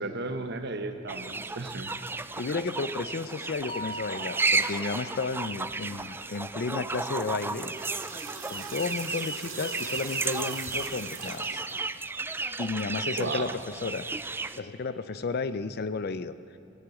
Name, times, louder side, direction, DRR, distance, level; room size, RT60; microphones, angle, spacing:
voice 1, 0.0-2.0 13.2-13.6, right 3 dB, 55° right, 7 dB, 1.1 m, -34 dB
sound 1, 1.1-14.6, right 3 dB, 10° right, 0.3 m, -33 dB
voice 2, 2.4-7.7 8.5-11.6 12.6-13.5 13.8-14.1 14.6-16.3, left 4 dB, 55° left, 13 dB, 0.5 m, -33 dB
sound 2, 3.7-7.9, equal, 25° left, 0.9 m, -44 dB
sound 3, 7.4-11.7, right 5 dB, 85° right, 2.7 m, -41 dB
16.0 x 9.9 x 8.3 m, 2.6 s
head